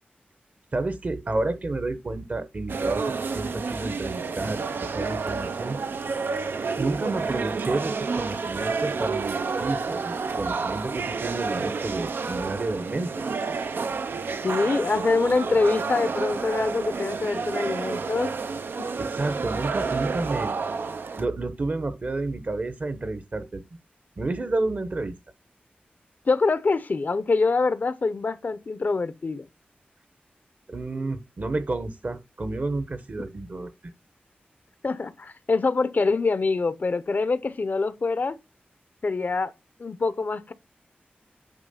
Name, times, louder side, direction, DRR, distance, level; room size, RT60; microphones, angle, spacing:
voice 1, 0.7-5.8 6.8-13.2 19.0-20.6 21.2-23.6 24.2-25.1 30.7-33.7, right 2 dB, 45° right, 1.1 m, -30 dB
sound 1, 2.7-21.2, right 4 dB, 75° right, 0.5 m, -30 dB
voice 2, 14.4-18.3 18.8-18.9 26.3-29.4 34.8-38.4 39.0-39.5 39.8-40.5, left 3 dB, 55° left, 0.6 m, -25 dB
9.0 x 3.1 x 5.7 m
wide cardioid pair, 85°, 4 cm